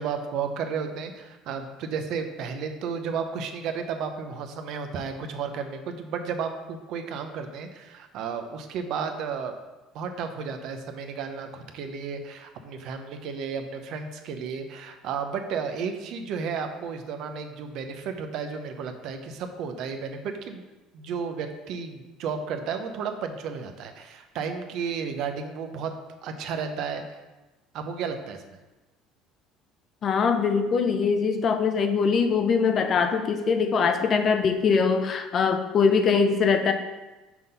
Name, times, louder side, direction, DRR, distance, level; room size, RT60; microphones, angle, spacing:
voice 1, 0.0-9.5 9.9-20.6 20.9-25.9 26.2-27.0 27.7-28.6, right 6 dB, 60° right, 6 dB, 0.7 m, -33 dB
voice 2, 30.0-36.7, left 5 dB, 35° left, 7 dB, 0.5 m, -22 dB
6.0 x 3.8 x 5.5 m, 1.1 s
cardioid pair, 145°, 0 cm